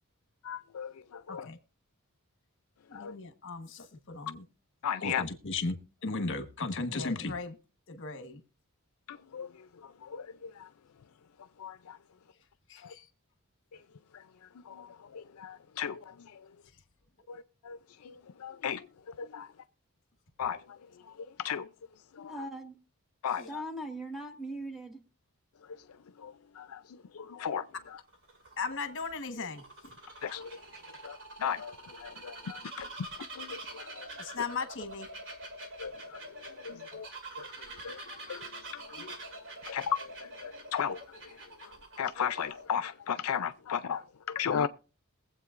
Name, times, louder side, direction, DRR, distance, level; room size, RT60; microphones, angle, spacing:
voice 1, 0.4-1.5 2.9-3.2 4.8-5.2 9.1-10.7 11.6-12.0 12.8-12.9 14.1-14.2 14.6-16.5 17.3-19.5 20.4-20.8 21.0-21.7 22.1-22.4 23.2-23.6 25.6-25.8 26.2-28.0 30.2-30.5 31.0-32.9 33.4-34.1 35.8-37.1 37.4-39.2 39.7-44.7, left 8 dB, 75° left, 0.4 m, -37 dB
voice 2, 2.9-4.4 5.0-7.6 7.9-8.4 12.7-13.0 28.6-29.9 34.2-35.1, left 3 dB, 60° left, 1.2 m, -36 dB
voice 3, 22.3-22.8 23.4-25.0, right 1 dB, ahead, 1.2 m, -40 dB
Bird vocalization bird call bird song, 27.8-42.9, right 1 dB, 60° right, 2.2 m, -46 dB
22.0 x 7.9 x 2.5 m
head